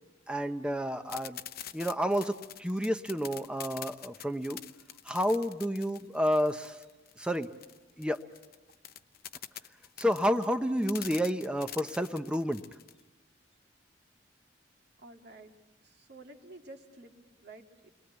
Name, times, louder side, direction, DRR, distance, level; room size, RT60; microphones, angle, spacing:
voice 1, 0.3-1.4 1.7-4.6 5.0-6.8 7.2-7.5 8.0-8.2 10.0-12.6, equal, 5° right, 8 dB, 0.8 m, -30 dB
sound 1, 1.1-13.0, left 11 dB, 55° left, 0.8 m, -45 dB
voice 2, 15.0-15.5 15.8-17.9, right 2 dB, 60° right, 3 dB, 2.6 m, -51 dB
29.5 x 22.0 x 8.1 m, 1.2 s
head